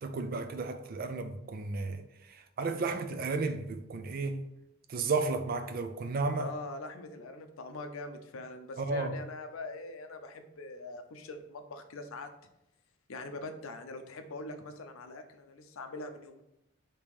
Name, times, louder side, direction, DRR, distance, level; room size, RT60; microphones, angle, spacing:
voice 1, 0.0-2.0 2.3-4.4 4.9-6.5 8.8-9.1, right 3 dB, 45° right, 0.4 m, -33 dB
voice 2, 6.4-12.3 13.1-16.4, left 2 dB, 75° left, 0.5 m, -43 dB
3.5 x 2.9 x 4.7 m
head